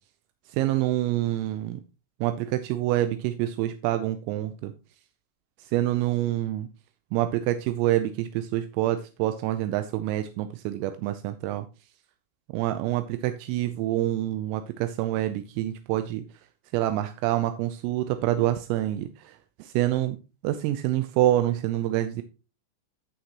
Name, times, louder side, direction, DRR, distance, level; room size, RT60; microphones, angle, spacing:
voice 1, 0.5-1.8 2.2-4.7 5.6-6.7 7.1-11.7 12.5-16.2 16.7-20.2 20.4-22.2, right 14 dB, 85° right, 9 dB, 3.3 m, -27 dB
13.0 x 6.5 x 2.9 m, 0.31 s
omnidirectional pair, 6.0 m